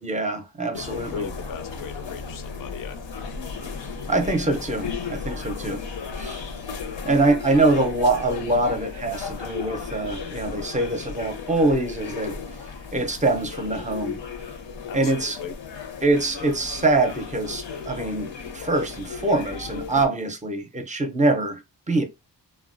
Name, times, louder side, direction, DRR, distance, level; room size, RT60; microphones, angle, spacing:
voice 1, 0.0-1.3 4.1-5.8 6.2-6.4 7.0-12.4 12.9-14.2 14.9-15.4 16.0-21.6 21.9-22.0, right 2 dB, 20° right, 0.5 m, -24 dB
sound 1, 0.7-20.1, left 5 dB, 85° left, 0.7 m, -35 dB
voice 2, 0.7-3.4 14.9-15.5, left 7 dB, 50° left, 0.5 m, -38 dB
3.4 x 2.2 x 2.4 m
wide cardioid pair, 130°, 43 cm